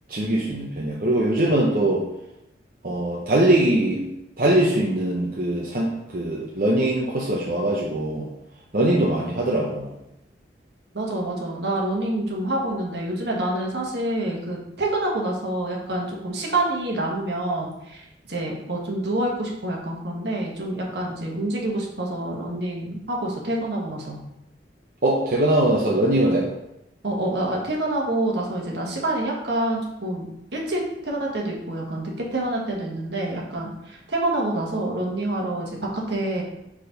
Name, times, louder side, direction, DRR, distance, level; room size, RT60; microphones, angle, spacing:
voice 1, 0.1-2.1 2.8-4.1 4.4-8.3 8.7-9.9 25.0-26.5, right 1 dB, 50° right, -4 dB, 0.8 m, -22 dB
voice 2, 10.9-18.0 18.3-24.2 27.0-33.7 34.1-35.7 36.1-36.4, right 1 dB, 75° right, -2 dB, 1.5 m, -27 dB
4.9 x 4.3 x 5.2 m, 0.86 s
head